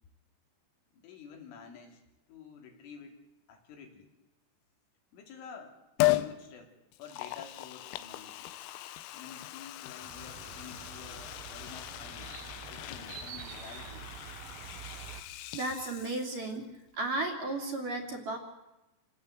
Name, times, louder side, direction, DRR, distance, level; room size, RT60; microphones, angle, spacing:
voice 1, 0.9-2.0 2.3-3.2 3.5-4.1 5.1-5.7 6.1-6.7 7.0-8.5 9.1-12.3 12.7-14.1, left 6 dB, 70° left, 3 dB, 5.0 m, -50 dB
Liquid, 6.0-6.3 6.9-16.6 16.9-17.0, left 18 dB, 90° left, 3.7 m, -36 dB
sound 1, 10.0-15.2, right 9 dB, 65° right, 2.4 m, -47 dB
voice 2, 15.5-16.7 17.0-18.4, right 2 dB, 45° right, 1 dB, 3.7 m, -34 dB
28.0 x 18.0 x 7.9 m, 0.99 s
omnidirectional pair, 5.9 m